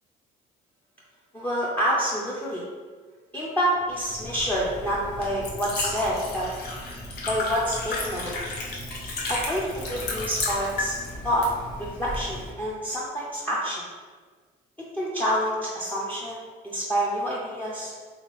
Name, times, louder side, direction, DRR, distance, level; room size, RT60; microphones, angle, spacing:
voice 1, 1.3-2.6 3.3-6.5 7.3-8.4 9.3-11.0 11.2-11.5 11.8-13.8 14.9-17.9, equal, 10° left, -6 dB, 0.5 m, -27 dB
Liquid, 4.0-12.5, left 2 dB, 70° left, 0.8 m, -33 dB
3.2 x 2.8 x 3.1 m, 1.5 s
cardioid pair, 110°, 17 cm